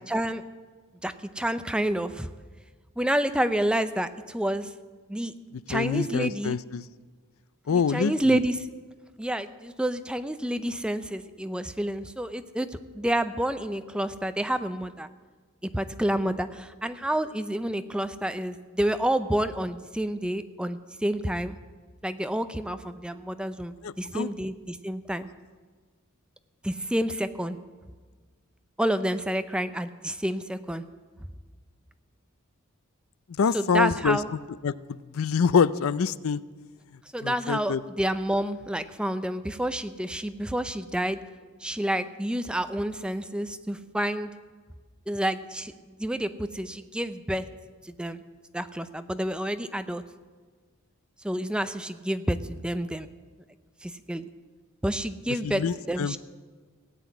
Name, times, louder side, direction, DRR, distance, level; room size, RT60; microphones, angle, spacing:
voice 1, 0.1-0.4 1.0-2.3 3.0-4.7 5.1-5.3 5.7-6.6 7.7-8.6 9.2-15.1 15.7-21.6 22.0-25.3 26.6-27.6 28.8-30.8 33.5-34.3 37.1-41.2 41.6-44.3 45.1-45.7 46.0-47.4 47.8-48.2 48.5-50.0 51.2-53.1 53.8-54.3 54.8-56.2, right 1 dB, 5° right, 10 dB, 0.5 m, -29 dB
voice 2, 5.7-6.8 7.7-8.4 23.8-24.3 33.4-34.2 34.6-36.4 37.2-37.8 55.4-56.2, left 6 dB, 75° left, 17 dB, 0.4 m, -26 dB
17.0 x 8.0 x 9.4 m, 1.4 s
head